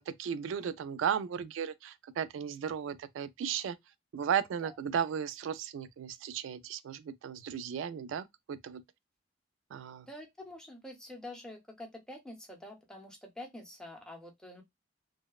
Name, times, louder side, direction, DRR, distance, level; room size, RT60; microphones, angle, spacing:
voice 1, 0.0-3.8 4.1-8.8 9.7-10.1, right 8 dB, 80° right, 0.3 m, -35 dB
voice 2, 10.1-14.6, left 1 dB, 5° left, 0.5 m, -47 dB
2.7 x 2.0 x 2.2 m
head